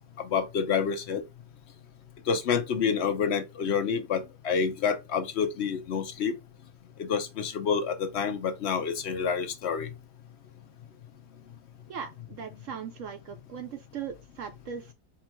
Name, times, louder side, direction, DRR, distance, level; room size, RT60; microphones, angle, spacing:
voice 1, 0.2-1.2 2.3-6.4 7.0-9.9, left 6 dB, 55° left, 0.8 m, -28 dB
voice 2, 11.9-14.9, right 7 dB, 65° right, 0.8 m, -39 dB
4.4 x 2.4 x 4.4 m
omnidirectional pair, 1.7 m